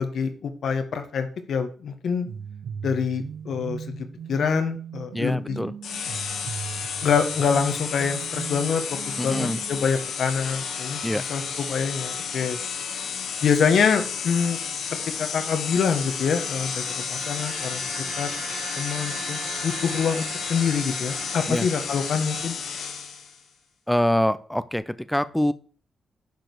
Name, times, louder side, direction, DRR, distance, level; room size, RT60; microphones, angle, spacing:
voice 1, 0.0-2.3 2.8-5.6 7.0-12.6 13.4-14.6 15.2-16.8 17.1-17.8 18.2-18.3 18.8-22.6, left 6 dB, 60° left, 7 dB, 1.5 m, -25 dB
sound 1, 2.2-9.9, right 7 dB, 80° right, 0.8 m, -38 dB
voice 2, 5.1-5.7 9.2-9.6 11.0-11.2 21.5-21.7 23.9-25.5, equal, 5° left, 14 dB, 0.5 m, -25 dB
sound 2, 5.8-23.4, left 6 dB, 80° left, 1.7 m, -32 dB
sound 3, 15.4-23.1, right 6 dB, 55° right, 1.3 m, -41 dB
10.5 x 5.2 x 6.1 m, 0.41 s
wide cardioid pair, 170°, 0 cm